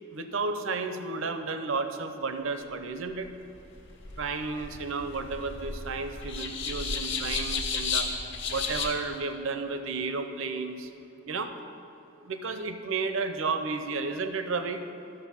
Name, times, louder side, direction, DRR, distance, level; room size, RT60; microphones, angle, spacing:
voice 1, 0.1-3.3 4.2-8.1 8.5-10.9 11.3-11.5 12.2-14.8, right 4 dB, 65° right, 8 dB, 0.6 m, -32 dB
sound 1, 3.6-8.9, left 4 dB, 55° left, 1.3 m, -33 dB
13.0 x 6.7 x 5.7 m, 2.8 s
head